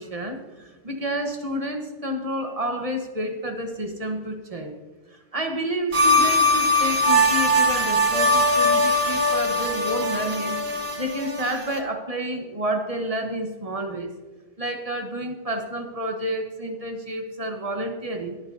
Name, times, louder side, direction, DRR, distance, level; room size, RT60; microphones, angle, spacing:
voice 1, 0.0-4.8 5.1-10.6 11.0-14.1 14.6-18.4, right 1 dB, 30° right, 4 dB, 0.7 m, -30 dB
sound 1, 5.9-11.8, left 1 dB, 60° right, 1.9 m, -21 dB
17.0 x 9.8 x 2.6 m, 1.4 s
omnidirectional pair, 2.0 m